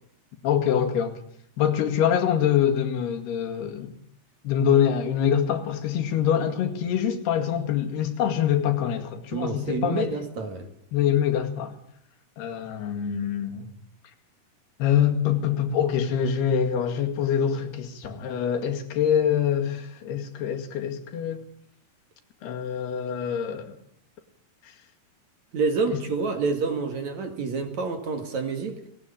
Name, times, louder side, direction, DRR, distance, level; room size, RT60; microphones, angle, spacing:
voice 1, 0.4-1.2 1.6-3.9 4.4-10.1 10.9-11.8 12.4-13.7 14.8-21.4 22.4-23.8 24.6-24.7 25.9-26.0, left 9 dB, 80° left, 5 dB, 4.1 m, -25 dB
voice 2, 9.3-10.7 25.5-28.8, right 4 dB, 50° right, 6 dB, 3.1 m, -28 dB
20.0 x 18.5 x 8.7 m, 0.69 s
omnidirectional pair, 4.6 m